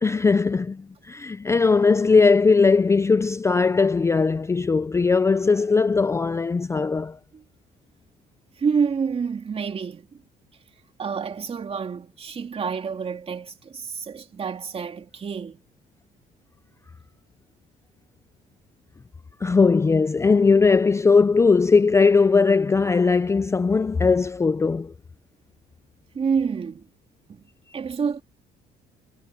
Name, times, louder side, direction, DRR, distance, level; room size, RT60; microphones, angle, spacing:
voice 1, 0.0-7.2 19.4-24.9, left 4 dB, 15° left, 0.4 m, -19 dB
voice 2, 8.6-10.2 11.0-15.6 26.1-26.9 27.3-27.4 27.7-28.2, right 6 dB, 35° right, 2.9 m, -28 dB
cardioid pair, 110°, 17 cm